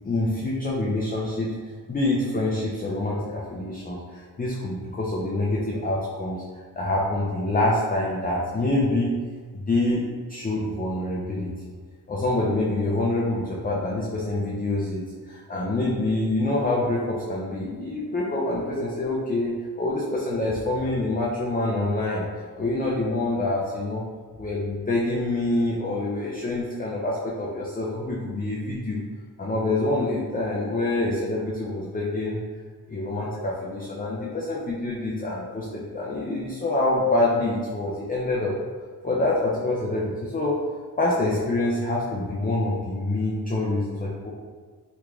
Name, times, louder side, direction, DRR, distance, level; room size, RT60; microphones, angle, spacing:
voice 1, 0.0-1.5 1.9-6.4 6.8-9.1 9.5-11.5 12.1-22.3 22.5-24.0 24.4-29.0 29.4-32.4 32.9-38.5 39.0-40.6 41.0-44.3, left 2 dB, 20° left, -4 dB, 0.5 m, -26 dB
3.5 x 2.9 x 2.4 m, 1.5 s
cardioid pair, 65°, 40 cm